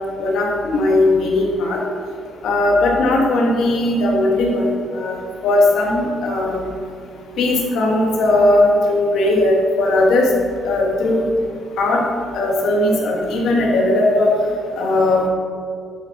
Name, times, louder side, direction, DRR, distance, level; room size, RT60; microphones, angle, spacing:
voice 1, 0.2-1.8 2.4-6.6 7.4-10.3 10.6-11.2 11.8-12.0 12.3-14.3 14.8-15.2, left 2 dB, 75° left, -2 dB, 3.1 m, -17 dB
11.5 x 9.9 x 5.5 m, 2.2 s
cardioid pair, 90°, 0 cm